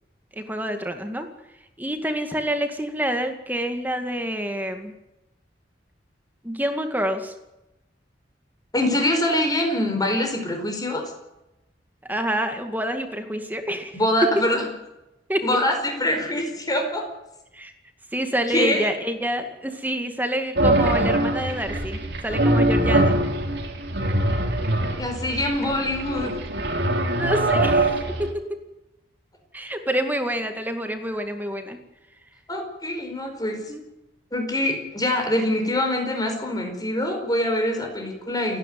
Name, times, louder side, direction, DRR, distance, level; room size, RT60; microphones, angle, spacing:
voice 1, 0.4-1.3 1.8-4.9 6.4-7.3 12.1-14.0 15.3-15.4 17.5-17.7 18.1-23.2 27.1-28.6 29.5-31.8 33.7-33.8, equal, 10° right, 6 dB, 2.2 m, -27 dB
voice 2, 8.7-11.0 13.9-14.7 15.4-17.0 18.5-18.9 25.0-26.4 32.5-33.6 34.3-38.6, left 1 dB, 20° left, 4 dB, 4.9 m, -24 dB
sound 1, 20.6-28.3, right 1 dB, 60° right, 3.0 m, -23 dB
29.0 x 11.0 x 9.4 m, 0.95 s
head